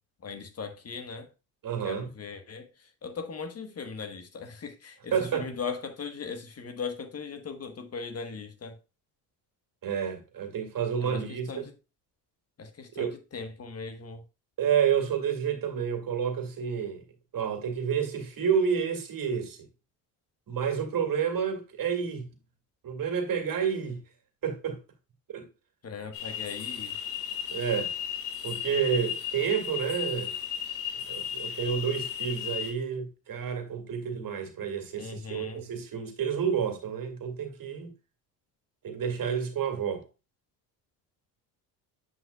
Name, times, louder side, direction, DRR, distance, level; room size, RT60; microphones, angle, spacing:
voice 1, 0.2-1.3 1.8-8.8 11.0-11.7 12.6-14.2 25.8-26.9 35.0-35.6, left 5 dB, 35° left, 1.3 m, -39 dB
voice 2, 1.6-2.1 5.1-5.5 9.8-11.6 13.0-13.1 14.6-17.0 17.3-19.6 20.5-22.3 22.8-24.0 24.4-24.8 25.3-25.5 27.5-27.9 28.4-30.3 31.1-37.9 38.8-40.0, right 7 dB, 50° right, 2.2 m, -29 dB
sound 1, 26.1-32.7, left 9 dB, 85° left, 1.9 m, -35 dB
9.2 x 5.5 x 2.3 m
hypercardioid pair, 70°, 43 cm